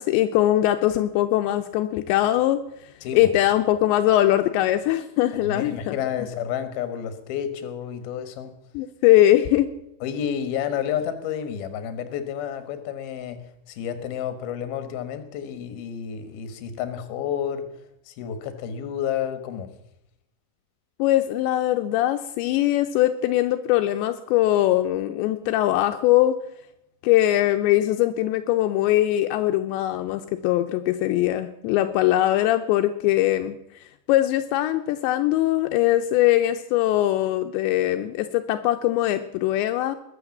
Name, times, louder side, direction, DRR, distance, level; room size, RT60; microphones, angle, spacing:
voice 1, 0.0-2.6 3.1-6.0 8.7-9.7 21.0-26.4 27.0-33.6 34.1-40.0, left 14 dB, 85° left, 7 dB, 2.9 m, -21 dB
voice 2, 3.0-3.3 5.4-8.5 10.0-17.7 18.1-19.7, left 9 dB, 65° left, 11 dB, 3.1 m, -30 dB
21.0 x 9.3 x 7.2 m, 0.82 s
omnidirectional pair, 5.1 m